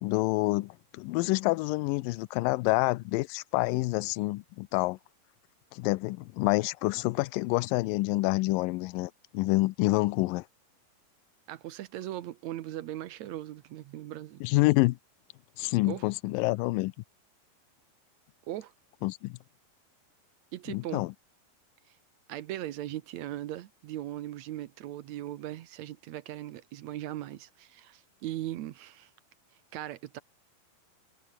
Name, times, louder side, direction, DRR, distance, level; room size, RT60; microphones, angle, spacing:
voice 1, 0.0-5.0 5.7-10.5 14.4-15.0 15.6-16.9 19.0-19.4 20.7-21.1, left 22 dB, 80° left, 2.2 m, -27 dB
voice 2, 11.5-14.4 15.8-16.0 18.5-18.7 20.5-21.0 22.3-29.1 29.7-30.2, right 13 dB, 70° right, 1.8 m, -39 dB
omnidirectional pair, 4.2 m